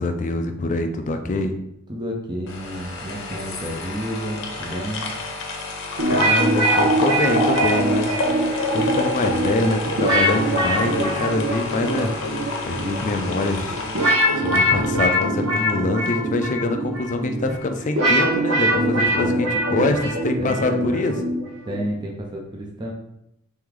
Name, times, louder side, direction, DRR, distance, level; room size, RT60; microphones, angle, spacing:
voice 1, 0.0-1.5 6.1-8.1 8.7-12.1 12.7-13.8 14.4-21.1, left 2 dB, 35° left, 6 dB, 0.4 m, -24 dB
voice 2, 1.9-5.1 18.6-20.0 20.3-21.1 21.7-22.9, equal, 20° right, -1 dB, 0.5 m, -31 dB
sound 1, 2.5-15.7 16.1-16.2, left 1 dB, 65° left, 0.8 m, -28 dB
sound 2, 6.0-21.9, right 1 dB, 80° right, 1.0 m, -23 dB
3.4 x 3.1 x 3.7 m, 0.80 s
head